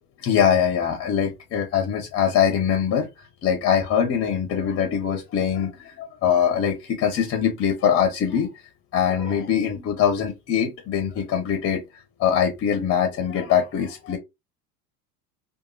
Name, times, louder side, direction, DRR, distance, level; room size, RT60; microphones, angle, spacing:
voice 1, 0.2-8.5 8.9-14.2, left 8 dB, 30° left, 0.6 m, -23 dB
2.9 x 2.3 x 2.6 m
hypercardioid pair, 75°, 49 cm